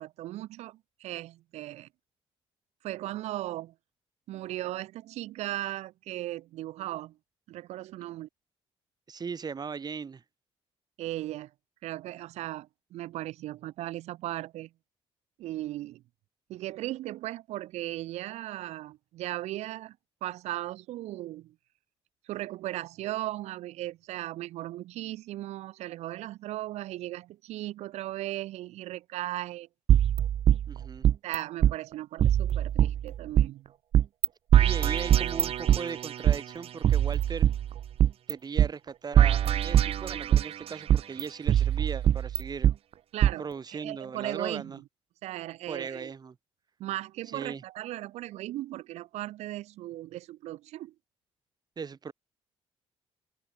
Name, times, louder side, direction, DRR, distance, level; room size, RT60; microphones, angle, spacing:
voice 1, 0.0-1.9 2.8-3.7 4.3-7.1 7.5-8.3 11.0-11.5 11.8-14.7 15.4-16.0 16.5-19.9 20.2-21.5 22.2-29.7 31.2-33.7 43.1-44.7 45.2-46.1 46.8-50.9, right 15 dB, 85° right, 1.8 m, -37 dB
voice 2, 9.1-10.2 30.7-31.1 34.6-37.5 38.3-42.7 43.4-44.8 45.7-46.4 47.3-47.6 51.8-52.1, right 5 dB, 40° right, 3.8 m, -38 dB
sound 1, 29.9-31.4 31.6-31.7 32.2-33.5 33.9-34.3 34.5-36.4 36.8-38.3 38.6-38.7 39.2-40.5 40.9-42.7 43.2-43.3, right 10 dB, 60° right, 1.2 m, -23 dB
cardioid pair, 95°, 11 cm